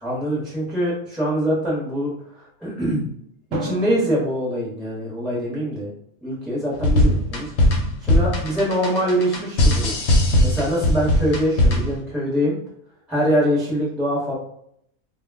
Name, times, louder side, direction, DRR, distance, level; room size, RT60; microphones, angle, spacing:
voice 1, 0.0-3.1 3.6-5.9 6.2-7.5 8.0-10.0 10.4-12.6 13.1-14.3, equal, ahead, -6 dB, 0.7 m, -24 dB
Drum, 3.5-5.6, right 1 dB, 70° right, 0.9 m, -34 dB
sound 1, 6.7-12.0, left 1 dB, 60° left, 0.8 m, -19 dB
2.2 x 2.2 x 3.4 m, 0.69 s
omnidirectional pair, 1.4 m